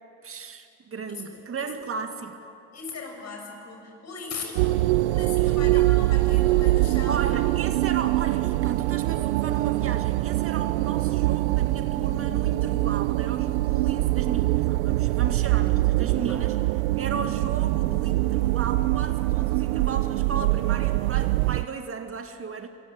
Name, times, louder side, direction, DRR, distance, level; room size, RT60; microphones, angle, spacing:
voice 1, 0.2-2.4 5.7-5.9 7.1-16.6 17.0-22.7, right 5 dB, 40° right, 6 dB, 2.1 m, -35 dB
voice 2, 1.1-1.7 2.7-4.8 5.1-7.2 16.3-16.4, left 4 dB, 50° left, 3 dB, 7.4 m, -38 dB
sound 1, 4.6-21.6, right 19 dB, 85° right, 0.5 m, -23 dB
26.0 x 22.0 x 9.5 m, 2.6 s
hypercardioid pair, 65°, 34 cm